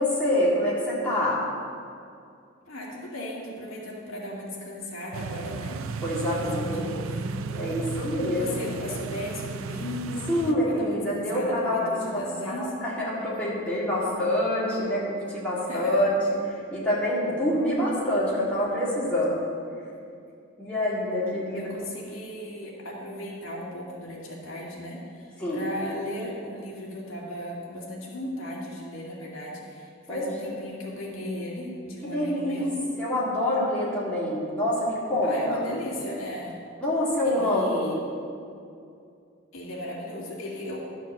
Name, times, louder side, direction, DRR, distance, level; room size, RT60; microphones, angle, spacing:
voice 1, 0.0-1.4 6.0-6.9 7.5-8.7 10.3-16.2 16.4-19.5 20.6-21.7 25.4-25.6 30.1-30.2 32.0-32.7 33.0-35.6 36.8-38.0, left 1 dB, 5° left, -9 dB, 2.1 m, -26 dB
voice 2, 2.7-5.8 6.2-7.8 8.3-12.7 15.7-16.1 21.5-32.8 35.2-36.6 37.2-38.0 39.5-40.8, left 1 dB, 85° left, -4 dB, 2.0 m, -36 dB
sound 1, 5.1-10.5, right 4 dB, 85° right, 0.4 m, -35 dB
12.0 x 4.3 x 7.2 m, 2.4 s
head